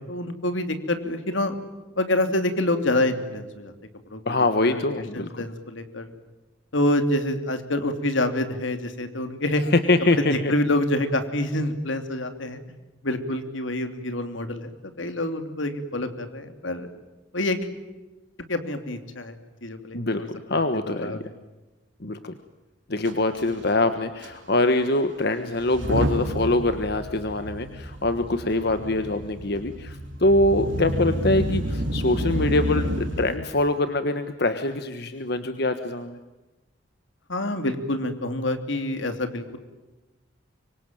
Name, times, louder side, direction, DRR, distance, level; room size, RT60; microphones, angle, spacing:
voice 1, 0.0-1.6 2.0-3.7 4.1-4.8 5.1-6.1 6.7-9.6 10.1-12.6 13.0-14.7 15.0-16.9 17.3-17.6 18.5-19.4 19.6-20.3 21.0-21.2 37.3-39.6, left 1 dB, 80° left, 8 dB, 2.9 m, -27 dB
voice 2, 4.2-5.4 9.7-10.5 19.9-20.2 20.5-21.2 22.0-22.3 22.9-36.2, left 2 dB, 55° left, 9 dB, 1.4 m, -24 dB
Motor vehicle (road) / Engine starting / Accelerating revving vroom, 23.1-23.2 23.4-23.6 24.2-24.3 25.6-33.4, equal, 80° right, 3.5 m, -29 dB
25.0 x 24.5 x 9.1 m, 1.1 s
head